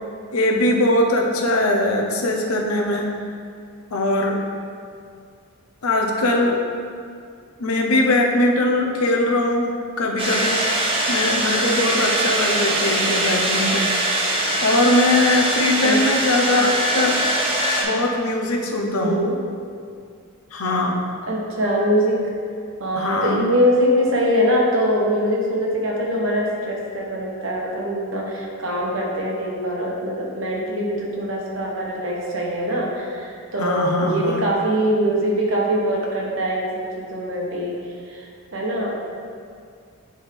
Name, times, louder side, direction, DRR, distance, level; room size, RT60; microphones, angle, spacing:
voice 1, 0.3-3.1 3.9-4.4 5.8-6.6 7.6-9.7 10.0-10.6 11.1-13.9 14.6-17.2 17.8-19.2 20.5-21.0 23.0-23.4 33.6-34.5, left 1 dB, 85° left, 1 dB, 0.8 m, -21 dB
sound 1, 10.2-17.8, right 1 dB, 25° right, 1.0 m, -22 dB
voice 2, 19.0-19.4 21.3-22.3 22.8-39.0, equal, 60° right, -2 dB, 1.2 m, -23 dB
9.8 x 3.6 x 3.4 m, 2.3 s
head